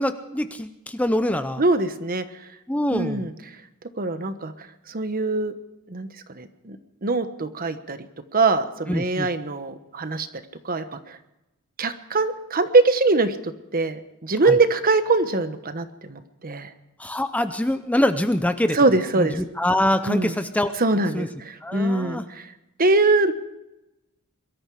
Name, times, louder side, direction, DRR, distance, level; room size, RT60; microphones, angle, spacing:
voice 1, 0.0-1.6 2.7-3.3 8.9-9.3 14.5-14.6 17.0-18.8 19.2-20.7 21.1-21.3 21.6-22.2, left 1 dB, 5° left, 10 dB, 0.6 m, -24 dB
voice 2, 1.6-2.2 2.9-3.3 4.0-4.5 4.9-5.5 5.9-6.1 6.3-6.8 7.0-8.0 8.3-10.3 10.6-11.2 11.8-13.4 13.7-16.7 18.7-19.4 20.1-20.3 20.8-22.4 22.8-23.3, right 3 dB, 40° right, 10 dB, 1.2 m, -22 dB
22.5 x 13.5 x 4.9 m, 0.95 s
head